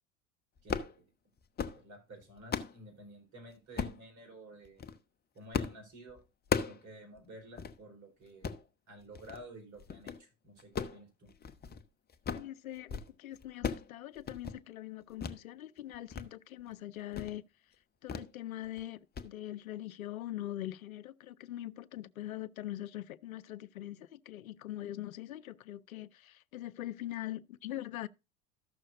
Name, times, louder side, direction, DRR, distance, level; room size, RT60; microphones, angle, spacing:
sound 1, 0.6-1.0 1.4-1.8 2.2-2.8 3.8-4.0 4.7-5.0 5.5-5.8 6.1-6.8 7.2-7.3 7.6-7.8 8.3-8.6 9.1-9.4 9.8-10.2 10.6-11.8 12.1-12.5 12.8-13.1 13.4-13.9 14.2-14.6 15.2-15.4 15.8-16.3 16.6-16.7 17.1-17.4 18.1-18.3 18.6-18.8 19.2-19.3, left 6 dB, 25° left, 0.8 m, -37 dB
voice 1, 0.6-1.0 1.7-4.9 5.3-6.2 6.6-8.5 8.9-11.3, right 1 dB, 45° right, 4.7 m, -52 dB
voice 2, 12.3-17.5 18.0-28.1, left 14 dB, 85° left, 0.5 m, -42 dB
14.0 x 6.4 x 2.6 m
hypercardioid pair, 75°, 41 cm